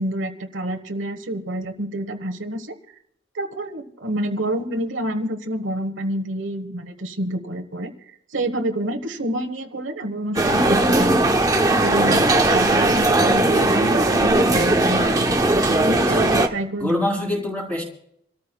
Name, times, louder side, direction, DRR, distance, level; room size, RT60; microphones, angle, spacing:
voice 1, 0.0-2.8 3.3-7.9 8.3-11.3 11.8-17.0, right 1 dB, 90° right, 7 dB, 1.4 m, -28 dB
sound 1, 10.4-16.5, right 2 dB, 20° right, 0.9 m, -18 dB
voice 2, 16.0-16.3 16.8-17.8, left 1 dB, 5° left, 0 dB, 3.6 m, -25 dB
27.5 x 13.5 x 2.3 m, 0.70 s
head